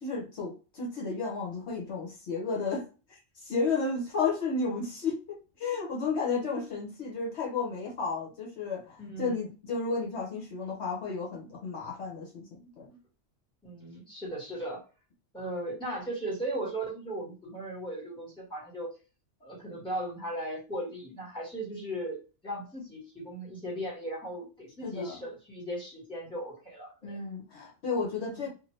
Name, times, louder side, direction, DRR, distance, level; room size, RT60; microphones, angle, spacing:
voice 1, 0.0-2.8 3.4-13.0 24.8-25.2 27.0-28.5, left 4 dB, 65° left, -2 dB, 1.2 m, -33 dB
voice 2, 9.0-9.4 13.6-14.8 15.3-18.9 19.4-27.2 28.3-28.4, right 1 dB, 5° left, -5 dB, 1.5 m, -37 dB
2.7 x 2.6 x 3.1 m, 0.33 s
omnidirectional pair, 1.2 m